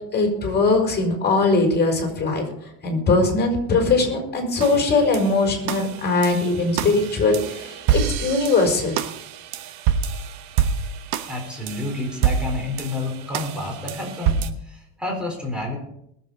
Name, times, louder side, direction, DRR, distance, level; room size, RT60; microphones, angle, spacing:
voice 1, 0.1-2.4 2.8-9.0, left 3 dB, 20° left, 2 dB, 5.2 m, -20 dB
sound 1, 4.6-14.5, right 8 dB, 60° right, 1.3 m, -27 dB
voice 2, 11.3-15.8, left 2 dB, ahead, 0 dB, 4.2 m, -29 dB
21.5 x 7.6 x 5.4 m, 0.75 s
supercardioid pair, 125°, 46 cm